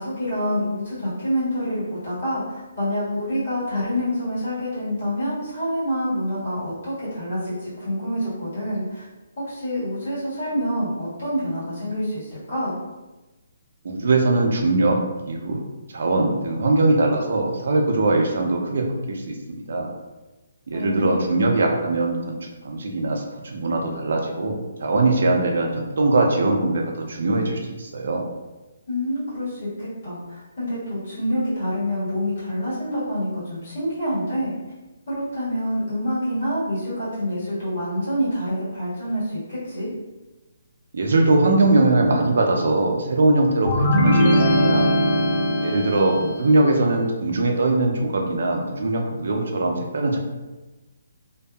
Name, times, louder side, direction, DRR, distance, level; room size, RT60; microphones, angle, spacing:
voice 1, 0.0-9.0 9.4-12.8 20.7-21.3 28.9-34.5 35.1-39.9, equal, 45° left, -10 dB, 1.4 m, -27 dB
voice 2, 13.8-15.0 15.3-15.6 15.9-19.4 19.7-19.9 20.7-28.2 40.9-44.2 44.5-44.9 45.6-50.2, right 2 dB, 50° right, 1 dB, 0.4 m, -21 dB
sound 1, 43.7-46.5, equal, 25° left, 0.4 m, -19 dB
2.6 x 2.3 x 2.3 m, 1.1 s
hypercardioid pair, 180°, 0 cm